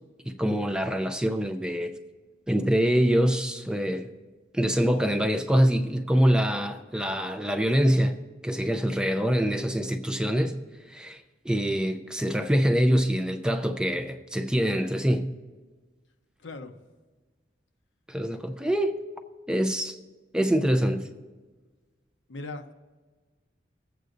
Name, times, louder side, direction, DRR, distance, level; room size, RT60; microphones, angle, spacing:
voice 1, 0.3-1.9 2.5-4.1 4.5-8.2 8.4-10.6 10.9-15.3 18.1-19.0 19.5-20.0 20.3-21.1, equal, 5° right, 0.5 m, -25 dB
voice 2, 16.4-16.8 22.3-22.7, left 2 dB, 85° left, 0.8 m, -38 dB
22.5 x 7.9 x 2.6 m
head